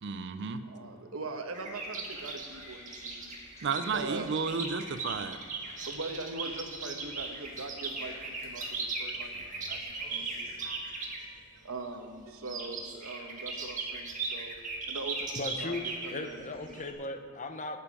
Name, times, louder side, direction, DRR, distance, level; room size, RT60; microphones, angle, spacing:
voice 1, 0.0-0.7 3.6-5.4, right 5 dB, 55° right, 11 dB, 0.5 m, -32 dB
voice 2, 0.6-3.3 3.9-4.6 5.8-9.3 9.7-14.6 14.9-16.5 16.8-17.0, right 3 dB, 75° right, 5 dB, 1.2 m, -42 dB
sound 1, 1.5-11.2 12.4-16.9, right 3 dB, 35° right, 1.5 m, -38 dB
sound 2, 2.1-10.6, left 1 dB, 15° left, 1.9 m, -55 dB
voice 3, 15.4-15.8 16.1-17.8, left 2 dB, 35° left, 7 dB, 0.8 m, -37 dB
18.5 x 7.1 x 4.9 m, 2.1 s
head